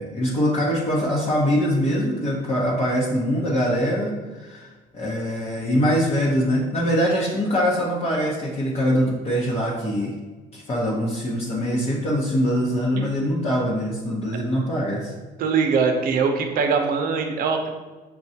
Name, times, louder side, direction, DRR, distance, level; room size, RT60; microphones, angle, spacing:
voice 1, 0.0-10.1 10.5-15.1, equal, 35° left, -5 dB, 0.8 m, -23 dB
voice 2, 15.4-17.7, right 5 dB, 60° right, 4 dB, 0.6 m, -22 dB
6.2 x 2.2 x 2.7 m, 1.3 s
cardioid pair, 110°, 17 cm